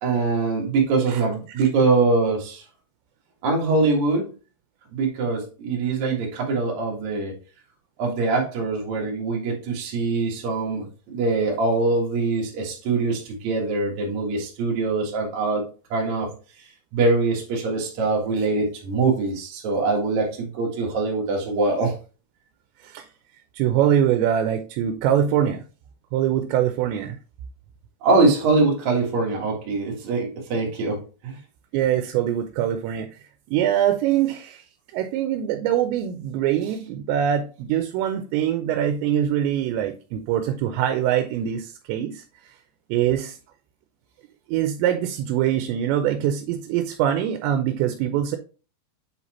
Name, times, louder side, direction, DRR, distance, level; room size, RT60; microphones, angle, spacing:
voice 1, 0.0-2.6 3.4-4.3 4.9-7.3 8.0-15.6 15.9-16.3 16.9-22.0 28.0-31.4, right 3 dB, 55° right, -1 dB, 2.3 m, -23 dB
voice 2, 23.5-25.6 26.1-27.2 31.7-33.2 33.5-34.6 34.9-42.2 42.9-43.4 44.5-48.4, right 10 dB, 85° right, 7 dB, 2.9 m, -23 dB
7.8 x 4.2 x 3.0 m, 0.35 s
omnidirectional pair, 5.0 m